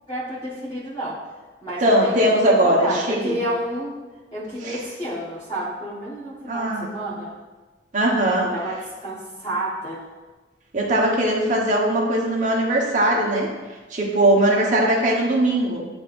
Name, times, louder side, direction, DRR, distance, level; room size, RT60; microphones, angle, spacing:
voice 1, 0.1-1.2 1.6-4.0 4.3-7.3 8.4-10.0, right 1 dB, 25° left, -11 dB, 1.3 m, -30 dB
voice 2, 1.8-3.3 4.6-4.8 6.5-6.8 7.9-8.5 10.7-13.5 13.9-15.9, right 1 dB, 45° right, -2 dB, 1.2 m, -20 dB
10.5 x 3.5 x 2.6 m, 1.3 s
head